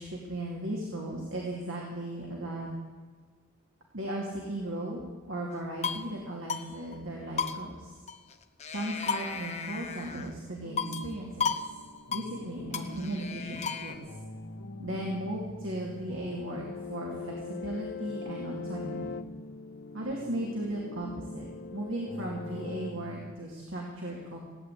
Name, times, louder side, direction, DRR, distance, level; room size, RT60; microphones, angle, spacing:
voice 1, 0.0-2.7 3.9-5.0 5.3-8.0 8.7-11.5 12.1-14.0 14.8-16.6 16.9-19.1 19.9-21.5 21.7-24.4, right 1 dB, 60° right, -2 dB, 2.7 m, -36 dB
sound 1, 5.5-6.1 6.5-6.7 6.9-7.0 7.4-8.3 8.6-10.3 10.8-11.1 11.4-11.7 11.9-12.3 12.7-13.9, left 5 dB, 30° left, 0.8 m, -34 dB
sound 2, 10.6-23.3, equal, 90° left, 1.3 m, -46 dB
sound 3, 15.9-22.9, left 5 dB, 45° left, 0.4 m, -42 dB
17.0 x 9.8 x 8.3 m, 1.5 s
head